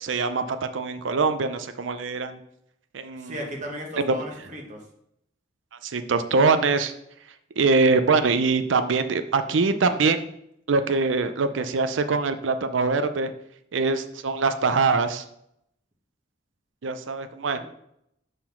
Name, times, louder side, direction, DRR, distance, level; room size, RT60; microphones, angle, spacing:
voice 1, 0.0-2.4 2.9-3.3 4.0-4.1 5.8-6.9 7.6-10.3 10.7-13.3 13.7-15.2 16.8-17.6, right 4 dB, 90° right, 10 dB, 0.5 m, -23 dB
voice 2, 3.1-4.8 17.5-17.6, equal, 40° right, 0 dB, 1.6 m, -36 dB
6.8 x 3.8 x 5.9 m, 0.76 s
head